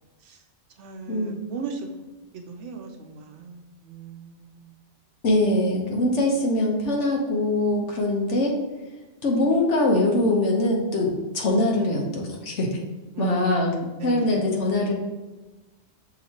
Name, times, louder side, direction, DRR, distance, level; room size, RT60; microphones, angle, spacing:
voice 1, 0.8-1.8 2.5-4.7 13.1-13.7 14.0-14.5, right 4 dB, 85° right, 4 dB, 1.0 m, -33 dB
voice 2, 5.2-8.6 9.2-11.1 11.3-12.7 13.2-13.7 14.0-14.9, left 1 dB, 85° left, 0 dB, 1.3 m, -22 dB
6.4 x 2.9 x 2.8 m, 1.2 s
omnidirectional pair, 1.2 m